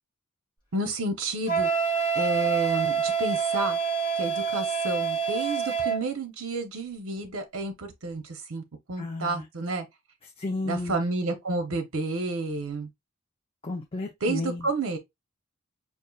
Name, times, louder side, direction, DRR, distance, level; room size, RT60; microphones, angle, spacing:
voice 1, 0.7-1.7 2.1-3.8 4.1-8.6 8.9-9.8 10.6-12.9 14.2-15.0, right 2 dB, 65° right, 0.7 m, -30 dB
Wind instrument woodwind instrument, 1.5-6.0, right 6 dB, 25° right, 2.1 m, -26 dB
voice 2, 9.0-9.4 10.4-11.0 13.6-14.7, left 2 dB, 25° left, 0.6 m, -32 dB
5.3 x 2.4 x 2.3 m
head